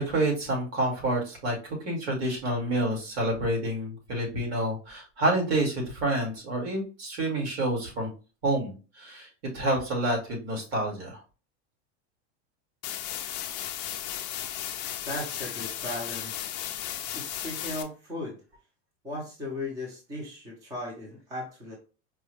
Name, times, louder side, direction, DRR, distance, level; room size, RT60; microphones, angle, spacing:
voice 1, 0.0-1.6 1.8-8.1 8.4-9.3 9.5-11.2, right 1 dB, 65° right, 0 dB, 1.9 m, -28 dB
sound 1, 12.8-17.8, left 11 dB, 40° left, 0.4 m, -35 dB
voice 2, 15.0-16.5 17.1-18.4 19.0-21.7, left 1 dB, 10° right, -3 dB, 0.6 m, -37 dB
4.6 x 2.2 x 3.0 m, 0.33 s
supercardioid pair, 175°, 34 cm